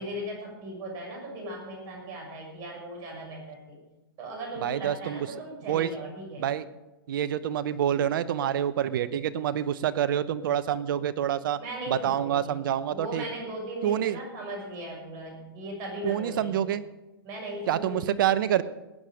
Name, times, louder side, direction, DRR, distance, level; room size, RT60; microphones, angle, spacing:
voice 1, 0.0-3.8 4.2-6.5 11.6-12.6 12.9-16.7 17.2-18.2, right 1 dB, 30° right, 0 dB, 6.5 m, -38 dB
voice 2, 4.6-5.3 5.7-5.9 6.4-6.6 7.1-11.6 11.9-13.2 13.8-14.2 16.0-16.8 17.7-18.6, right 10 dB, 60° right, 14 dB, 0.9 m, -27 dB
19.5 x 9.3 x 5.1 m, 1.1 s
hypercardioid pair, 135°, 13 cm